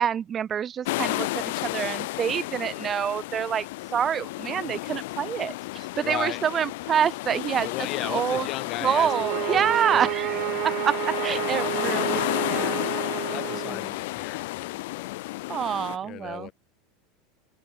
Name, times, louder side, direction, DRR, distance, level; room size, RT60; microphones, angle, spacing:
voice 1, 0.0-7.7 8.0-8.5 8.8-10.4 10.6-12.9 13.5-14.0 15.5-16.5, right 8 dB, 25° right, 1.4 m, -27 dB
sound 1, 0.8-16.0, left 21 dB, 70° left, 1.5 m, -32 dB
voice 2, 6.0-6.4 7.6-10.7 11.3-11.9 13.2-15.2 16.0-16.5, left 15 dB, 40° left, 4.2 m, -36 dB
sound 2, 8.9-13.8, right 26 dB, 50° right, 1.0 m, -31 dB
open air
supercardioid pair, 150°, 0 cm